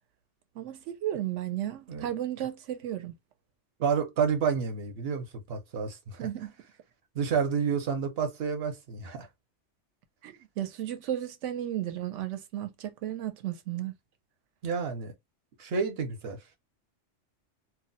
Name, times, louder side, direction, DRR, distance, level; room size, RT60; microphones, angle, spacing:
voice 1, 0.6-3.1 6.2-6.5 10.2-13.9, right 12 dB, 85° right, 0.9 m, -34 dB
voice 2, 3.8-6.3 7.1-9.3 14.6-15.1 15.6-16.4, right 6 dB, 65° right, 0.9 m, -30 dB
2.3 x 2.1 x 3.8 m
omnidirectional pair, 1.2 m